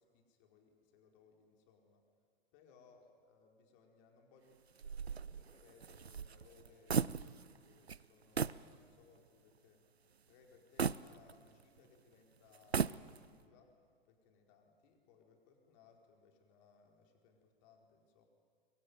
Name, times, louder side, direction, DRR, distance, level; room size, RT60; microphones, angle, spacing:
voice 1, 0.0-2.0 2.5-9.8 10.3-13.8 14.0-18.3, left 5 dB, 40° left, 2 dB, 4.5 m, -66 dB
sound 1, 4.8-7.6 7.9-8.0 8.4-8.7 9.2-9.3 10.8-11.8 12.5-13.4, right 6 dB, 80° right, 0.6 m, -37 dB
24.0 x 23.0 x 9.5 m, 2.2 s
figure-of-eight pair, 100°, 31 cm